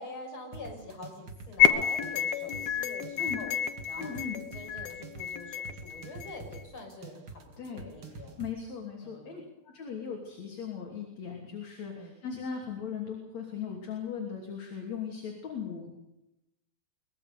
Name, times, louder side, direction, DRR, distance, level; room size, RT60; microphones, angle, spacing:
voice 1, 0.0-3.5 3.9-8.4 9.0-9.4 11.9-12.2, left 2 dB, 35° left, 2 dB, 6.5 m, -45 dB
sound 1, 0.5-8.5, right 4 dB, 40° right, 2.5 m, -46 dB
sound 2, 1.6-6.6, left 9 dB, 80° left, 3.1 m, -29 dB
voice 2, 4.0-4.4 7.6-7.9 8.4-15.9, left 6 dB, 50° left, 1 dB, 4.0 m, -38 dB
23.5 x 21.0 x 6.8 m, 0.87 s
omnidirectional pair, 4.2 m